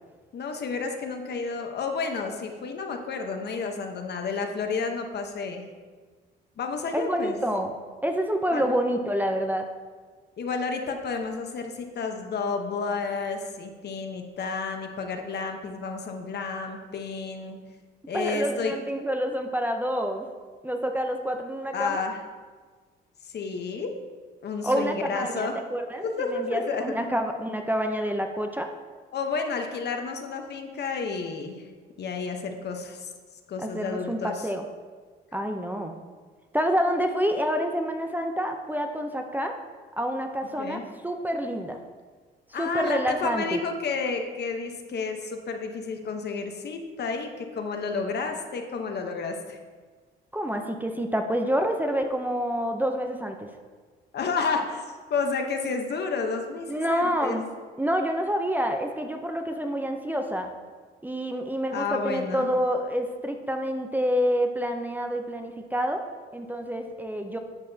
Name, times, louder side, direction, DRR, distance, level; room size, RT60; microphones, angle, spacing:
voice 1, 0.3-5.6 6.6-7.4 8.5-8.7 10.4-17.6 18.1-18.7 21.7-22.2 23.2-23.9 24.4-25.6 26.0-26.9 29.1-31.7 32.0-33.1 33.5-34.4 40.6-40.8 42.5-49.6 54.1-57.4 61.7-62.5, left 4 dB, 55° left, 4 dB, 1.0 m, -31 dB
voice 2, 6.9-7.7 8.0-9.7 18.1-20.3 20.6-22.0 24.6-28.7 33.6-34.6 35.3-36.0 36.5-39.6 40.0-41.8 42.6-43.6 50.3-53.5 56.7-57.4 57.8-60.5 61.0-66.0 66.3-67.4, equal, 10° right, 5 dB, 0.6 m, -28 dB
10.5 x 6.5 x 2.8 m, 1.5 s
cardioid pair, 90°, 20 cm